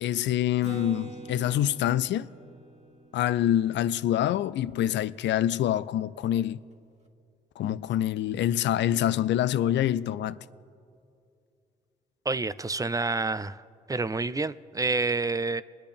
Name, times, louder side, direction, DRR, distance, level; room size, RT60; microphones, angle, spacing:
voice 1, 0.0-2.3 3.1-6.6 7.6-10.4, left 12 dB, 65° left, 0.4 m, -26 dB
Acoustic guitar, 0.6-4.3, right 3 dB, 35° right, 1.6 m, -44 dB
voice 2, 12.3-13.6 13.9-15.6, right 3 dB, 20° right, 0.5 m, -28 dB
24.5 x 10.0 x 3.5 m
hypercardioid pair, 45°, 20 cm